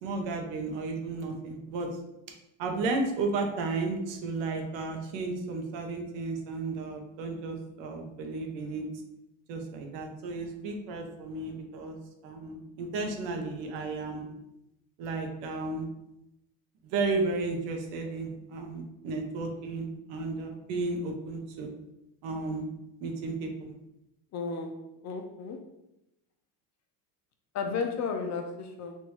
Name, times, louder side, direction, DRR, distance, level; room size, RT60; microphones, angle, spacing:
voice 1, 0.0-2.0 2.6-8.8 9.5-12.0 12.2-14.4 15.0-15.9 16.8-21.7 22.2-22.7 23.0-23.7, right 3 dB, 70° right, 3 dB, 0.8 m, -33 dB
voice 2, 24.3-24.7 25.0-25.6 27.5-29.0, left 5 dB, 40° left, 5 dB, 0.4 m, -33 dB
3.3 x 2.5 x 3.1 m, 0.87 s
supercardioid pair, 100°, 45 cm